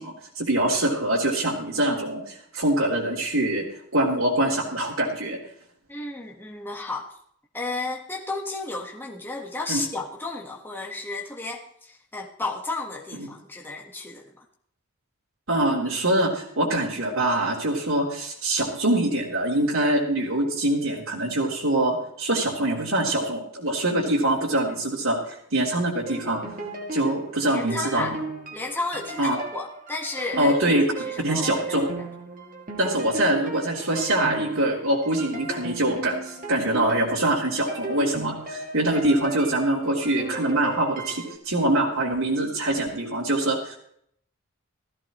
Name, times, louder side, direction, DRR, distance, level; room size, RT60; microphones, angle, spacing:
voice 1, 0.0-3.6 3.9-5.4 9.7-9.8 13.2-13.3 15.5-26.4 26.9-28.0 29.2-29.4 30.4-30.8 31.2-31.9 32.8-43.8, right 1 dB, 80° right, -6 dB, 3.6 m, -24 dB
voice 2, 5.9-7.1 7.5-14.3 27.5-28.1 28.5-31.9, left 3 dB, 10° left, -1 dB, 1.5 m, -33 dB
sound 1, 26.1-41.3, right 2 dB, 40° right, 2.5 m, -36 dB
17.0 x 15.0 x 3.2 m, 0.67 s
head